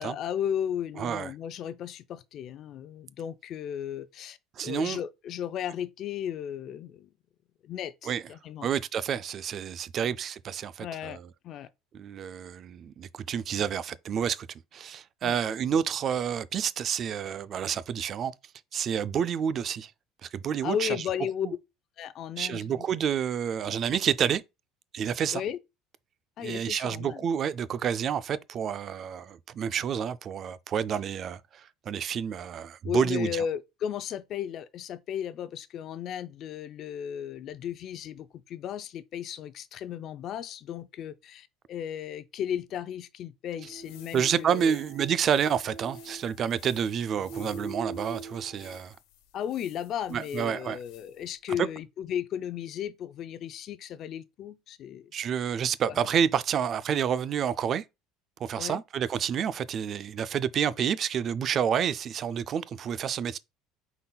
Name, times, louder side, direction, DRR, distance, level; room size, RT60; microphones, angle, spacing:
voice 1, 0.0-4.4 4.6-7.1 7.6-8.7 10.0-10.1 10.8-11.2 11.4-11.7 15.2-15.4 20.6-21.5 22.0-22.8 25.3-25.6 26.4-27.3 32.8-44.8 49.3-55.1 55.8-56.0 58.6-58.8, left 9 dB, 50° left, 0.4 m, -35 dB
voice 2, 1.0-1.3 4.6-5.0 8.0-8.2 8.6-11.2 11.9-18.3 18.7-19.9 20.2-21.0 22.4-24.4 24.9-25.4 26.4-33.5 44.1-49.0 50.1-50.8 51.6-51.7 55.1-57.8 58.4-63.4, right 8 dB, 40° right, 0.3 m, -29 dB
sound 1, 43.5-48.8, right 3 dB, 80° right, 2.0 m, -43 dB
sound 2, 43.6-51.4, left 11 dB, 75° left, 1.0 m, -56 dB
5.4 x 4.0 x 2.2 m
supercardioid pair, 115°, 0 cm